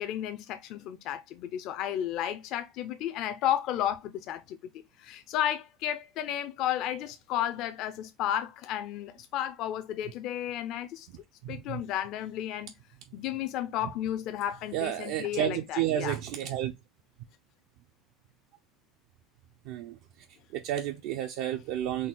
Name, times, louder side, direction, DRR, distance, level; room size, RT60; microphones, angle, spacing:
voice 1, 0.0-4.6 5.0-11.1 11.5-12.7 13.1-16.2, left 11 dB, 55° left, 0.4 m, -33 dB
voice 2, 11.4-11.8 14.7-16.7 19.7-20.0 20.5-22.1, right 11 dB, 70° right, 0.4 m, -31 dB
4.1 x 2.3 x 3.6 m
cardioid pair, 155°, 0 cm